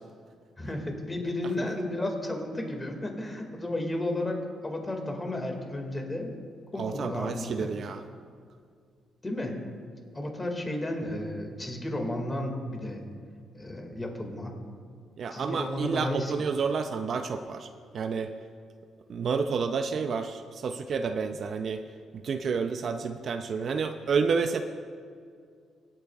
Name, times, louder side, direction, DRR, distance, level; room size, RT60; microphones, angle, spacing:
voice 1, 0.6-4.4 4.6-6.3 6.7-7.7 9.2-9.6 10.1-13.0 13.5-14.5 15.3-16.3, left 1 dB, 20° left, 2 dB, 2.0 m, -33 dB
voice 2, 6.8-8.0 15.2-17.7 17.9-18.3 19.1-21.8 22.2-24.6, right 5 dB, 55° right, 8 dB, 0.5 m, -30 dB
24.5 x 8.6 x 2.4 m, 2.2 s
cardioid pair, 90°, 0 cm